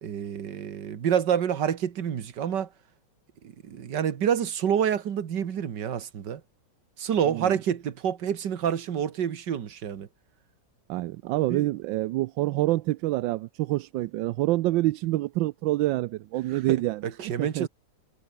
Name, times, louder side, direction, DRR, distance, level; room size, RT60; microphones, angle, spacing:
voice 1, 0.0-2.7 3.4-6.4 7.0-10.1 11.5-11.7 16.5-17.7, right 8 dB, 65° right, 2.1 m, -28 dB
voice 2, 10.9-17.0 17.4-17.7, right 17 dB, 85° right, 1.3 m, -27 dB
omnidirectional pair, 2.0 m